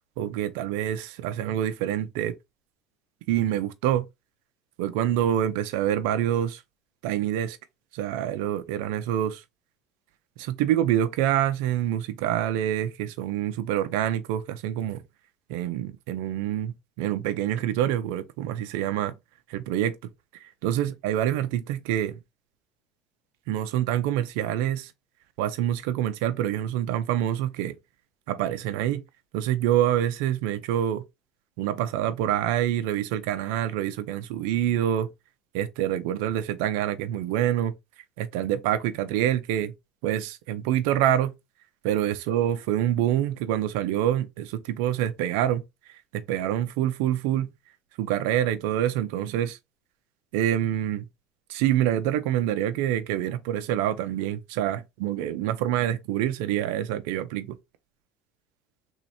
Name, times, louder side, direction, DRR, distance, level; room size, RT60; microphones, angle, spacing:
voice 1, 0.2-2.3 3.3-4.0 4.8-6.6 7.0-7.6 7.9-9.4 10.4-15.0 15.5-19.2 19.5-20.0 20.3-22.2 23.5-24.9 25.4-27.8 28.3-29.0 29.3-31.0 31.6-35.1 35.5-37.7 38.2-39.7 40.0-41.3 41.8-45.6 45.9-47.5 48.0-49.6 50.3-51.0 51.5-57.6, right 11 dB, 80° right, 0.5 m, -26 dB
3.2 x 2.8 x 4.2 m
supercardioid pair, 120°, 0 cm